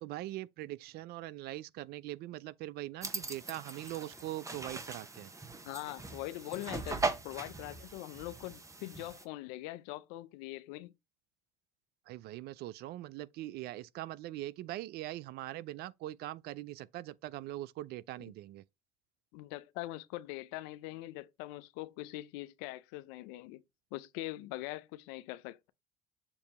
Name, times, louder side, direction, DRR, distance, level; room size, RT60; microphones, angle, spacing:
voice 1, 0.0-5.3 12.1-18.6, right 15 dB, 60° right, 0.5 m, -42 dB
sound 1, 3.0-9.2, right 3 dB, 15° right, 1.0 m, -40 dB
voice 2, 5.6-10.9 19.3-23.6 23.9-25.7, left 17 dB, 75° left, 0.5 m, -42 dB
7.1 x 2.7 x 5.3 m
hypercardioid pair, 75°, 19 cm